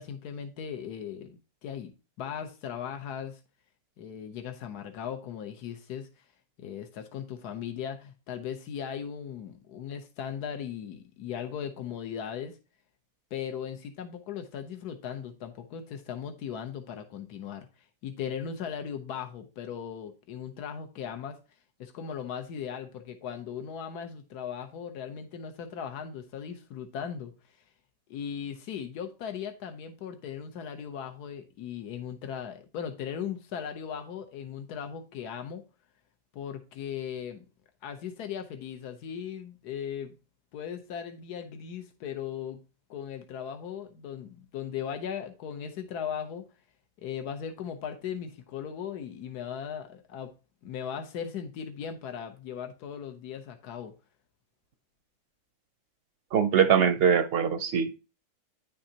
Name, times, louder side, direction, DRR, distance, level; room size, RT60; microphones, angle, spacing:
voice 1, 0.0-1.9 2.2-3.4 4.0-6.3 6.6-12.6 13.3-21.4 21.8-27.6 28.1-35.6 36.3-37.4 37.8-40.2 40.5-42.6 42.9-46.4 47.0-50.3 50.6-53.9, left 8 dB, 85° left, 1.4 m, -38 dB
voice 2, 56.3-58.0, right 7 dB, 65° right, 0.6 m, -23 dB
9.7 x 6.2 x 2.8 m
omnidirectional pair, 1.6 m